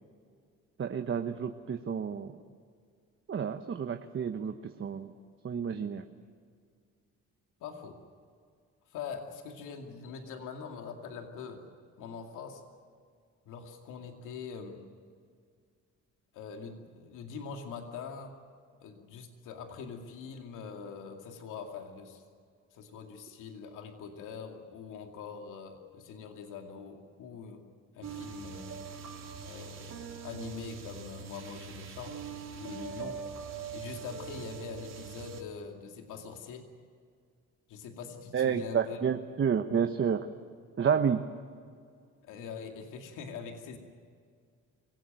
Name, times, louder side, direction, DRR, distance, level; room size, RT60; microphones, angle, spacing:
voice 1, 0.8-2.3 3.3-5.1 5.4-6.0 38.3-40.3 40.8-41.2, right 7 dB, 45° right, 6 dB, 1.2 m, -30 dB
voice 2, 7.6-8.0 8.9-11.6 12.0-12.6 13.5-14.8 16.3-18.4 18.8-22.2 22.7-27.6 27.9-28.7 29.4-32.2 32.6-33.2 33.7-36.7 37.7-39.0 42.2-43.8, left 6 dB, 90° left, 3 dB, 2.5 m, -43 dB
sound 1, 28.0-35.4, right 6 dB, 60° right, 3.5 m, -42 dB
25.0 x 17.5 x 9.1 m, 2.1 s
cardioid pair, 90°, 30 cm